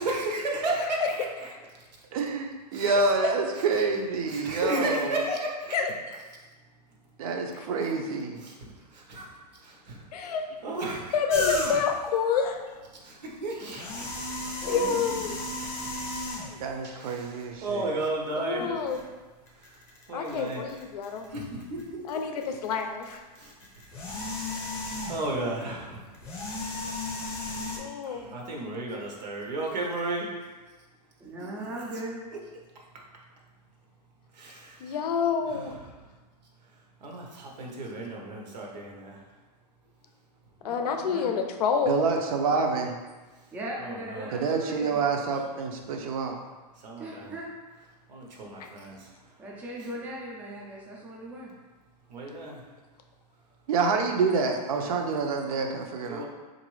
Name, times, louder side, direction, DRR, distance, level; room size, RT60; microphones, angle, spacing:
voice 1, 0.0-1.5 2.7-3.1 3.5-3.8 4.3-5.8 7.8-10.4 10.6-11.2 12.9-14.1 14.7-15.0 15.3-16.2 16.8-18.8 20.1-20.7 21.3-22.2 23.4-23.5 24.3-24.7 25.1-26.0 28.0-30.3 31.4-32.0 32.3-32.4 34.3-35.0 35.5-35.8 37.0-39.2 43.8-44.4 46.8-47.3 48.1-49.1 49.8-49.9 52.1-52.6 56.0-56.2, right 2 dB, 85° right, -1 dB, 1.0 m, -34 dB
voice 2, 2.1-5.1 7.2-8.4 16.6-17.6 41.9-42.9 44.3-46.4 53.7-56.2, right 4 dB, 60° right, 3 dB, 0.6 m, -27 dB
voice 3, 10.1-10.5 11.1-12.8 14.7-15.4 18.4-19.0 20.1-21.3 22.1-23.2 27.8-28.3 34.8-35.7 40.6-42.1 48.6-48.7, left 6 dB, 65° left, 5 dB, 0.5 m, -28 dB
sound 1, 11.3-12.0 13.6-16.7 17.5-17.6 18.9-19.0 19.5-21.8 22.1-25.4 26.1-27.8, left 2 dB, 10° left, 0.7 m, -34 dB
voice 4, 14.6-15.4 31.2-32.2 40.6-41.3 43.5-45.0 47.0-47.5 49.4-51.5 53.9-54.1, right 1 dB, 5° right, -4 dB, 0.4 m, -39 dB
3.9 x 2.6 x 3.1 m, 1.3 s
hypercardioid pair, 150°, 21 cm